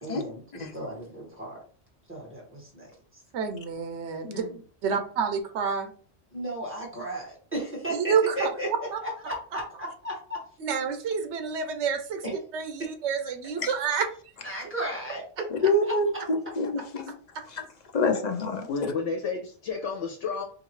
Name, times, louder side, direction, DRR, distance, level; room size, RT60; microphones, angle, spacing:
voice 1, 0.0-1.6 2.1-3.2 4.2-4.6 6.3-8.7 9.0-10.4 14.4-15.2 15.8-16.0, right 1 dB, 10° right, 1.7 m, -35 dB
voice 2, 3.3-4.4 4.8-5.9 7.9-8.5 8.9-9.0 10.6-12.2 12.5-14.1 17.3-17.4, right 6 dB, 75° right, 1.0 m, -28 dB
voice 3, 15.5-17.0 17.9-18.7, left 2 dB, 45° left, 0.6 m, -26 dB
voice 4, 18.7-20.4, left 5 dB, 90° left, 1.1 m, -31 dB
4.8 x 2.6 x 3.1 m
omnidirectional pair, 1.2 m